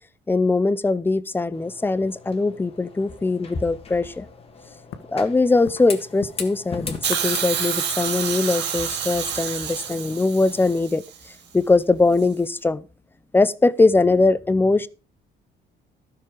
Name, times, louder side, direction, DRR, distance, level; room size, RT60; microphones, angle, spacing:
voice 1, 0.3-4.3 5.1-11.0 11.5-12.9 13.3-14.9, left 3 dB, 10° left, 0.5 m, -21 dB
sound 1, 1.5-10.8, left 4 dB, 30° left, 1.7 m, -39 dB
sound 2, 4.9-5.1 5.7-5.8 6.2-6.7 7.1-7.6 7.9-8.0 8.3-9.0 9.5-9.6, left 9 dB, 80° left, 1.4 m, -39 dB
Hiss, 7.0-11.2 12.2-12.3, right 8 dB, 65° right, 2.3 m, -28 dB
13.0 x 6.8 x 5.2 m
cardioid pair, 145°, 19 cm